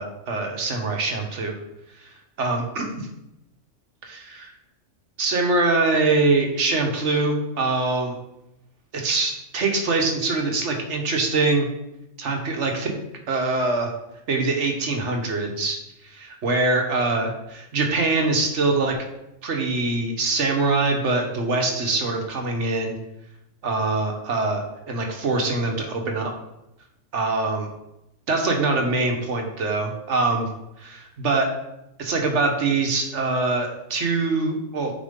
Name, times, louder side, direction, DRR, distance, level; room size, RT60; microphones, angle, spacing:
voice 1, 0.0-1.5 2.0-2.1 2.4-3.1 4.0-4.5 5.2-8.1 8.9-11.7 12.2-12.9 13.3-13.9 14.3-15.8 16.0-19.0 19.4-23.0 23.6-26.3 27.1-27.7 28.3-30.5 30.8-31.5 32.0-34.9, right 3 dB, 65° right, 2 dB, 1.4 m, -23 dB
9.2 x 4.4 x 3.7 m, 0.88 s
omnidirectional pair, 1.3 m